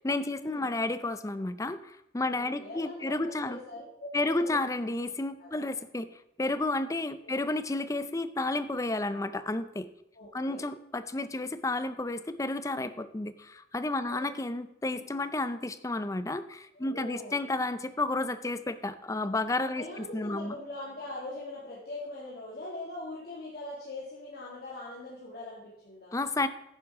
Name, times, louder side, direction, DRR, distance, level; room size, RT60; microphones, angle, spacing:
voice 1, 0.0-3.6 4.1-9.9 10.3-20.5 26.1-26.5, left 2 dB, 20° left, 13 dB, 0.5 m, -31 dB
voice 2, 2.3-4.6 5.4-5.7 7.2-7.4 10.1-10.7 14.0-14.3 16.7-17.4 19.6-26.2, left 2 dB, 60° left, -6 dB, 2.4 m, -42 dB
11.0 x 9.6 x 3.7 m, 0.82 s
head